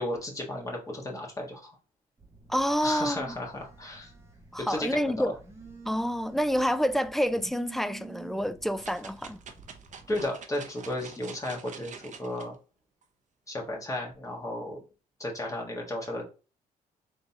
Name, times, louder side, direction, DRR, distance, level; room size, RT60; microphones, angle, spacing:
voice 1, 0.0-1.7 2.8-4.1 4.6-5.3 10.1-12.5 13.5-14.8 15.2-16.2, left 1 dB, 20° left, 1.5 m, -34 dB
Telephone, 2.2-10.3, right 4 dB, 15° right, 1.3 m, -50 dB
voice 2, 2.5-3.4 4.5-5.4 5.9-9.4, equal, ahead, 0.4 m, -28 dB
sound 1, 8.8-12.5 13.0-13.1, right 6 dB, 50° right, 0.7 m, -46 dB
3.8 x 2.8 x 3.6 m
cardioid pair, 80°, 16 cm